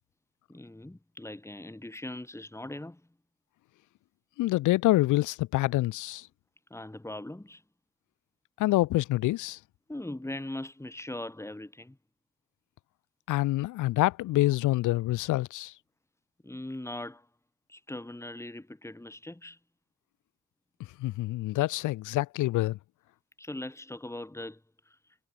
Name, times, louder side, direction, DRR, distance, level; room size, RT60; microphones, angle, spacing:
voice 1, 0.5-3.0 6.7-7.6 9.9-12.0 16.4-17.3 17.7-19.6 23.4-25.0, left 1 dB, 10° left, 7.5 m, -40 dB
voice 2, 4.4-6.3 8.6-9.6 13.3-15.7 21.0-22.8, left 17 dB, 85° left, 0.8 m, -26 dB
cardioid pair, 90°, 30 cm